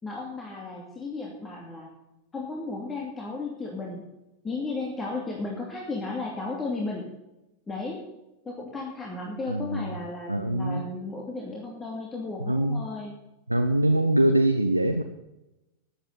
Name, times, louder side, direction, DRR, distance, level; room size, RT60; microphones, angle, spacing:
voice 1, 0.0-1.9 2.3-4.1 4.4-7.1 7.7-8.0 8.4-13.1, left 3 dB, 20° left, -2 dB, 2.7 m, -34 dB
voice 2, 9.5-9.9 10.3-10.8 12.4-12.8 13.5-15.0, right 1 dB, 85° right, 6 dB, 0.8 m, -23 dB
14.0 x 9.1 x 5.6 m, 0.95 s
figure-of-eight pair, 90°, 0 cm